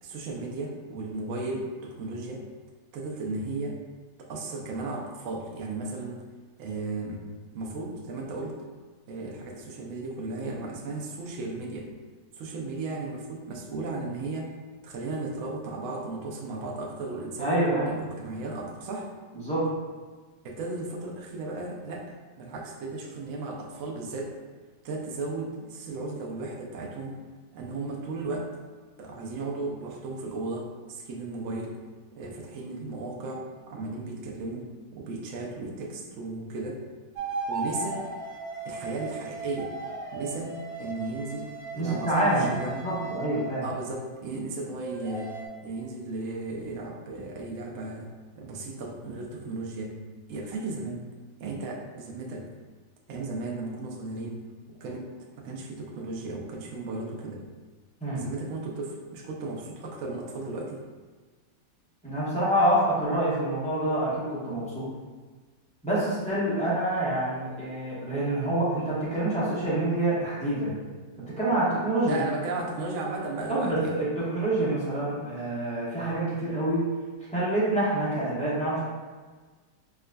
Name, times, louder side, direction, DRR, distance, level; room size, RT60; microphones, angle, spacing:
voice 1, 0.0-2.4 2.9-3.8 4.2-6.2 6.6-7.2 7.5-8.6 9.1-11.9 12.3-14.5 14.8-19.1 20.4-24.3 24.8-27.2 27.5-28.5 29.0-31.8 32.1-36.8 37.5-38.0 38.6-39.7 40.1-42.7 43.6-45.4 45.6-48.1 48.4-50.0 50.3-51.1 51.4-52.5 53.1-54.4 54.7-55.1 55.4-57.4 58.1-60.8 72.1-73.9, right 3 dB, 70° right, -1 dB, 0.8 m, -35 dB
voice 2, 17.4-18.0 19.3-19.7 41.8-43.6 58.0-58.2 62.0-64.9 65.8-70.8 71.2-72.2 73.5-76.9 77.3-78.8, right 1 dB, 10° left, -10 dB, 0.4 m, -27 dB
sound 1, 37.2-43.9 44.8-45.5, right 3 dB, 85° right, 1.3 m, -37 dB
4.6 x 2.4 x 2.2 m, 1.4 s
omnidirectional pair, 1.9 m